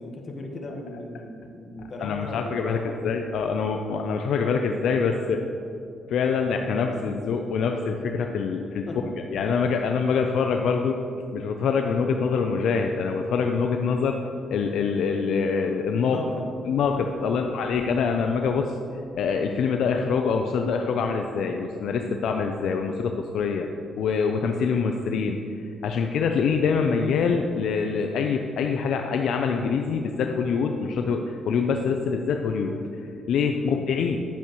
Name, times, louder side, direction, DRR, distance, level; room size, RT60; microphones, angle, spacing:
voice 1, 0.0-3.1 8.9-9.5 16.0-16.5 17.2-17.5 33.6-33.8, left 2 dB, 45° left, 1 dB, 1.4 m, -37 dB
voice 2, 2.0-2.8 3.0-5.4 6.1-8.9 9.3-11.0 11.3-14.2 14.5-16.2 16.7-18.7 19.1-23.7 24.0-32.8 33.3-34.2, left 5 dB, 75° left, 4 dB, 0.5 m, -25 dB
10.5 x 8.6 x 3.1 m, 2.6 s
cardioid pair, 90°, 0 cm